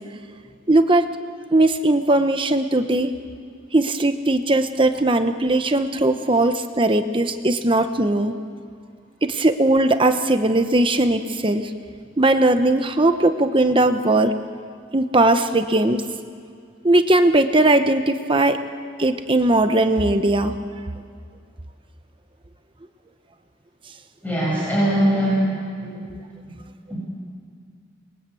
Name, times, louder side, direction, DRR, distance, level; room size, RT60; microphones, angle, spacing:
voice 1, 0.7-1.1 1.5-3.1 3.7-8.3 9.2-11.7 12.2-14.3 14.9-16.0 16.8-18.6 19.0-20.5, right 2 dB, 25° right, 8 dB, 0.9 m, -19 dB
voice 2, 24.2-25.4 25.8-26.1 26.9-27.0, right 1 dB, 10° left, -7 dB, 7.6 m, -21 dB
29.0 x 22.0 x 8.4 m, 2.2 s
head